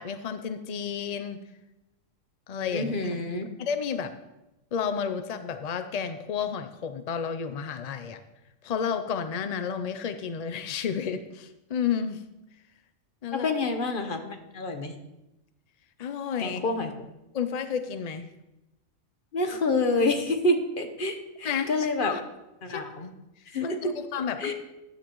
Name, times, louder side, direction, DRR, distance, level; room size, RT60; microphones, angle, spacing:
voice 1, 0.0-1.4 2.5-2.9 3.6-4.1 4.7-8.2 8.6-12.2 13.2-13.5 16.0-16.6 17.3-18.3 21.4-22.2 22.7-22.8 23.6-24.5, left 7 dB, 60° left, 9 dB, 0.4 m, -31 dB
voice 2, 2.7-3.5 13.3-14.9 16.4-16.9 19.3-22.1 22.6-23.1 23.5-23.8 24.4-24.5, left 2 dB, 40° left, 6 dB, 1.1 m, -28 dB
13.5 x 9.7 x 3.0 m, 0.95 s
omnidirectional pair, 1.4 m